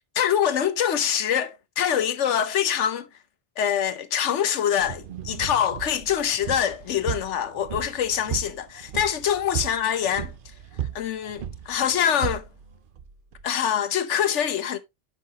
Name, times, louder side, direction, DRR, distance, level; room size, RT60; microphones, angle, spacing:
voice 1, 0.1-3.1 3.6-10.3 10.9-12.5 13.4-14.8, left 9 dB, 80° left, 1.1 m, -24 dB
sound 1, 4.8-13.5, right 10 dB, 55° right, 0.8 m, -35 dB
10.0 x 5.8 x 2.8 m
omnidirectional pair, 1.2 m